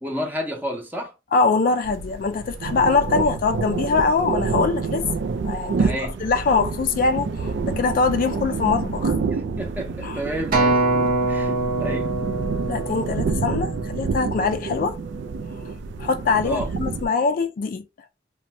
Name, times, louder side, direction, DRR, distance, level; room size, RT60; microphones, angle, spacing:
voice 1, 0.0-1.1 5.8-6.2 9.3-10.8 11.3-11.5 11.8-12.1 16.4-16.7, equal, 10° right, 0.7 m, -30 dB
voice 2, 1.3-5.0 5.4-5.9 6.2-9.2 10.0-10.2 12.7-15.0 16.0-17.8, left 4 dB, 50° left, 0.3 m, -23 dB
sound 1, 1.8-17.1, right 4 dB, 70° right, 0.4 m, -28 dB
Acoustic guitar, 10.5-14.9 15.6-15.7, right 2 dB, 50° right, 0.9 m, -24 dB
2.6 x 2.2 x 2.9 m
head